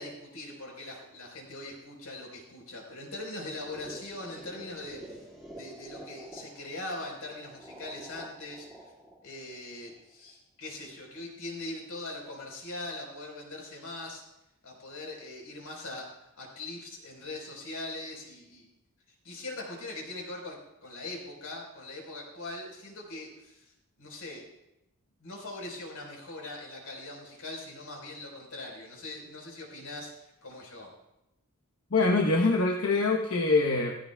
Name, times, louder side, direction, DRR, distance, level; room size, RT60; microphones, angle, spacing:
voice 1, 0.0-5.2 5.6-8.9 9.2-14.2 14.6-18.7 19.2-23.7 24.0-24.4 25.2-30.9, left 2 dB, 85° left, 0 dB, 4.3 m, -41 dB
sound 1, 3.4-10.3, right 1 dB, ahead, 2.1 m, -48 dB
voice 2, 31.9-33.9, left 3 dB, 65° left, 1 dB, 1.0 m, -24 dB
16.0 x 15.5 x 2.3 m, 0.88 s
head